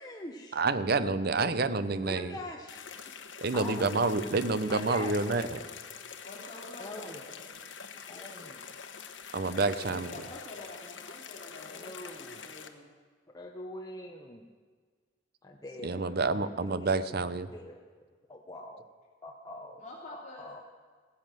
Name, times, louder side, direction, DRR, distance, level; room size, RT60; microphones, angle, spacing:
voice 1, 0.0-0.6 2.1-3.1 3.5-4.0 4.7-5.3 6.8-7.2 8.1-8.6 9.5-10.0 11.7-12.5 13.3-14.5 15.4-17.1 17.5-17.8 18.3-18.9 19.2-19.8 20.1-20.6, left 1 dB, 20° left, 1 dB, 0.9 m, -44 dB
voice 2, 0.5-2.4 3.4-5.6 9.3-10.1 15.8-17.5, right 3 dB, 55° right, 13 dB, 0.7 m, -28 dB
sound 1, 2.7-12.7, left 6 dB, 80° left, 1.1 m, -45 dB
voice 3, 6.2-7.6 9.8-12.9 19.8-20.5, left 2 dB, 40° left, -3 dB, 2.8 m, -48 dB
16.0 x 10.5 x 7.6 m, 1.5 s
head